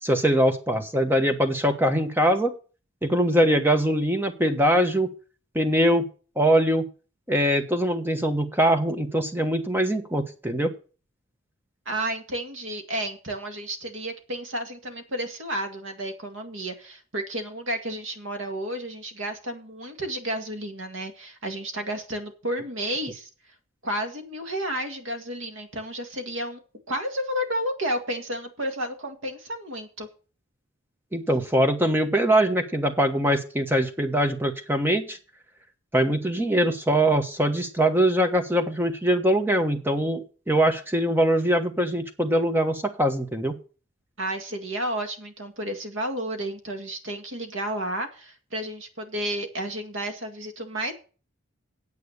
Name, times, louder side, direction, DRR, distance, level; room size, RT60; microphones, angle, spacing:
voice 1, 0.0-2.5 3.0-5.1 5.5-6.1 6.4-6.9 7.3-10.7 31.1-35.2 35.9-43.5, right 1 dB, 10° right, 7 dB, 1.2 m, -22 dB
voice 2, 11.9-23.3 23.8-26.6 26.9-30.1 44.2-50.9, right 1 dB, 75° right, 6 dB, 2.0 m, -31 dB
9.1 x 8.4 x 6.6 m, 0.37 s
head